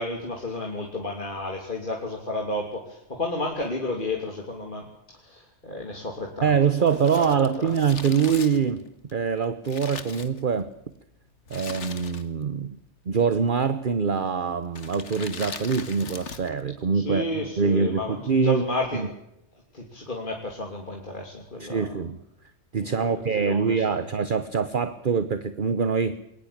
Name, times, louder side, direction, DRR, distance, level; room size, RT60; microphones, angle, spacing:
voice 1, 0.0-4.9 5.2-6.5 6.8-7.7 16.9-19.1 19.7-22.0 22.8-24.1, left 1 dB, 45° left, 3.2 m, -32 dB
voice 2, 6.4-10.7 11.5-12.8 13.1-18.6 18.9-19.1 21.6-22.2 22.7-26.2, right 6 dB, 45° right, 1.1 m, -24 dB
Crumpling crinkling, 6.8-10.8 11.5-12.5 12.8-12.9 13.7-14.0 14.7-16.6 16.9-17.0, left 5 dB, 75° left, 1.9 m, -40 dB
22.0 x 19.5 x 8.7 m
omnidirectional pair, 1.2 m